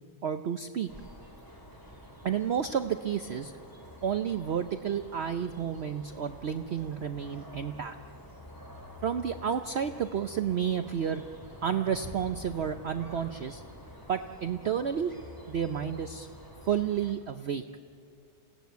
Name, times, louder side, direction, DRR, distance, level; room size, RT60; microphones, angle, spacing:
voice 1, 0.2-0.9 2.2-3.5 4.0-8.0 9.0-11.2 11.6-13.6 14.1-15.1 15.5-16.3 16.6-17.6, right 8 dB, 55° right, 9 dB, 0.8 m, -31 dB
sound 1, 0.9-17.1, left 1 dB, 15° left, 3.1 m, -48 dB
28.0 x 17.0 x 9.4 m, 2.3 s
omnidirectional pair, 1.6 m